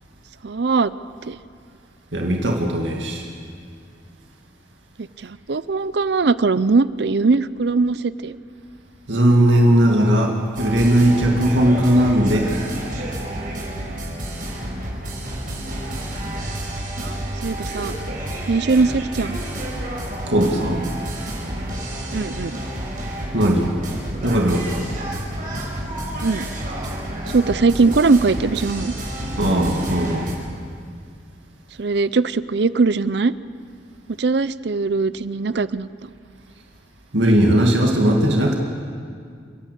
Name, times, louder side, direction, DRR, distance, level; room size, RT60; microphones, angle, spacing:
voice 1, 0.4-0.9 1.3-1.4 5.2-8.4 17.0-17.1 17.4-17.9 18.5-19.4 22.1-22.6 26.2-26.4 27.3-28.9 31.8-33.3 34.1-36.1, right 4 dB, 65° right, 16 dB, 0.6 m, -20 dB
voice 2, 2.1-3.3 9.1-12.6 20.3-20.9 23.3-23.7 24.2-24.9 29.4-30.3 37.1-38.6, right 1 dB, 80° right, 1 dB, 2.3 m, -18 dB
sound 1, 10.5-30.3, right 1 dB, 45° right, 5.1 m, -30 dB
30.0 x 11.0 x 8.4 m, 2.2 s
head